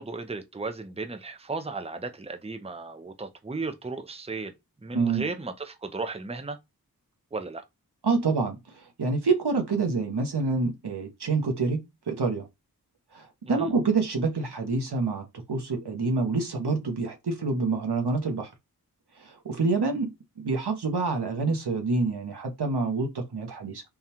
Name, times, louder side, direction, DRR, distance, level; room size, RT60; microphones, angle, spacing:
voice 1, 0.0-4.5 4.8-6.6 7.3-7.6 13.5-13.7, right 3 dB, 15° right, 0.6 m, -35 dB
voice 2, 4.9-5.2 8.0-12.5 13.1-18.5 19.2-23.8, right 3 dB, 90° right, 1.0 m, -27 dB
3.6 x 2.4 x 4.2 m
wide cardioid pair, 45°, 39 cm